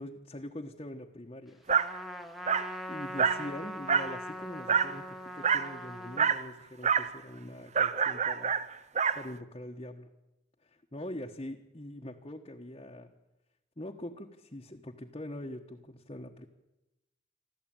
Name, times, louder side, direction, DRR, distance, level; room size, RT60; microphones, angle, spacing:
voice 1, 0.0-1.6 2.9-8.5 9.1-10.1 10.6-13.1 13.8-16.5, left 1 dB, 30° left, 0 dB, 1.3 m, -43 dB
Trumpet, 1.7-6.3, equal, ahead, 1.3 m, -41 dB
Dog, 1.7-1.9 2.5-2.7 3.2-3.5 3.9-4.2 4.7-4.9 5.4-5.7 6.2-6.4 6.8-7.1 7.7-9.2, right 6 dB, 40° right, 0.9 m, -27 dB
28.5 x 13.0 x 9.0 m, 0.97 s
head